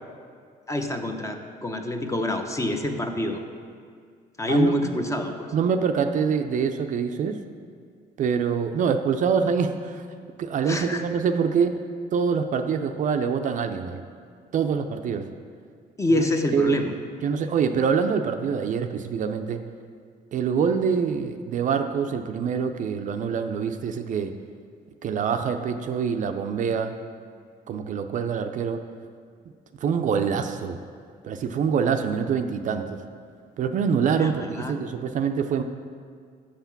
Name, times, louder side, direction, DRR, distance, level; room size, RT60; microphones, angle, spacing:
voice 1, 0.7-3.4 4.4-5.5 10.7-11.0 16.0-16.9 34.1-34.7, left 1 dB, 20° left, 5 dB, 0.7 m, -26 dB
voice 2, 5.5-7.4 8.2-10.1 10.4-11.8 12.1-14.0 14.5-15.3 16.5-16.9 17.2-19.6 20.3-24.4 25.0-27.0 27.7-28.8 29.8-30.8 31.2-33.0 33.6-35.6, right 6 dB, 50° right, 7 dB, 0.5 m, -25 dB
6.5 x 5.7 x 5.8 m, 2.1 s
cardioid pair, 110°, 17 cm